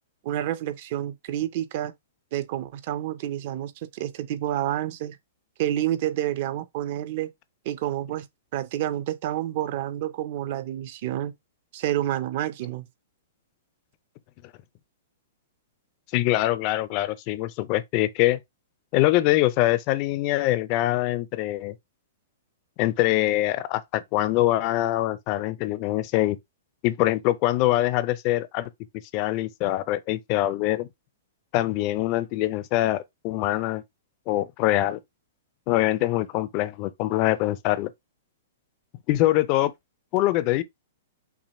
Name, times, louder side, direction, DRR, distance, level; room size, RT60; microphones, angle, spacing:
voice 1, 0.2-1.9 2.3-5.2 5.6-7.3 7.6-8.3 8.5-11.3 11.7-12.9, right 12 dB, 45° right, 0.5 m, -29 dB
voice 2, 16.1-18.4 18.9-21.7 22.8-26.4 26.8-28.7 29.1-30.9 31.5-33.8 34.3-35.0 35.7-37.9 39.1-39.7 40.1-40.6, left 16 dB, 35° left, 0.4 m, -24 dB
5.9 x 2.1 x 4.1 m
hypercardioid pair, 160°, 0 cm